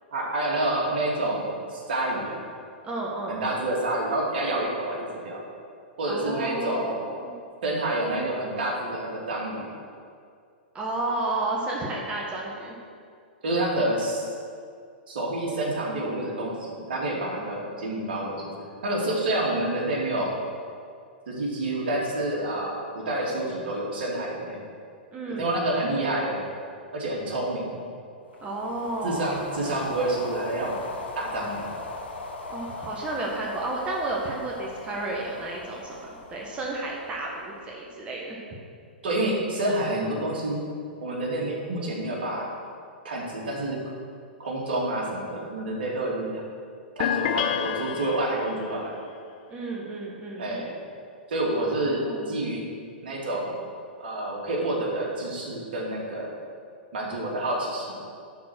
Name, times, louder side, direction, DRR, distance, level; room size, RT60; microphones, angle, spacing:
voice 1, 0.1-2.5 3.3-5.0 5.2-5.4 6.0-6.9 7.6-9.7 13.4-14.3 15.1-18.5 18.8-20.3 21.3-24.6 25.4-26.5 26.9-27.7 29.0-30.7 31.1-31.7 39.0-40.6 41.0-42.5 43.0-43.8 44.4-46.4 47.0-48.9 50.4-50.7 51.3-52.0 52.3-52.6 53.0-53.5 54.0-56.3 56.9-58.0, right 1 dB, 65° right, -3 dB, 2.5 m, -28 dB
voice 2, 2.8-3.7 6.1-7.3 10.7-12.7 25.1-25.6 28.4-29.3 32.5-38.4 49.5-50.6 51.5-52.4, right 2 dB, 20° right, -2 dB, 1.3 m, -32 dB
sound 1, 28.3-37.8, left 2 dB, 80° left, 1.2 m, -39 dB
sound 2, 47.0-48.8, left 10 dB, 50° left, 0.5 m, -28 dB
11.0 x 4.3 x 6.1 m, 2.3 s
hypercardioid pair, 110°, 6 cm